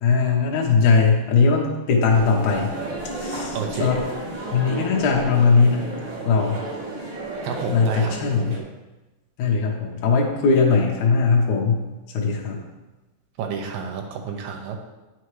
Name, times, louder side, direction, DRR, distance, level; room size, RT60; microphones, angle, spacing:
voice 1, 0.0-2.7 3.2-4.0 4.5-5.8 6.2-6.6 7.7-8.6 9.4-11.8 12.1-12.6, left 4 dB, 70° left, -2 dB, 1.7 m, -19 dB
sound 1, 2.1-8.6, right 2 dB, 55° right, 1.2 m, -32 dB
voice 2, 3.5-4.0 7.4-8.1 13.4-14.8, right 6 dB, 85° right, 3 dB, 2.4 m, -30 dB
8.8 x 5.7 x 3.2 m, 1.1 s
omnidirectional pair, 4.0 m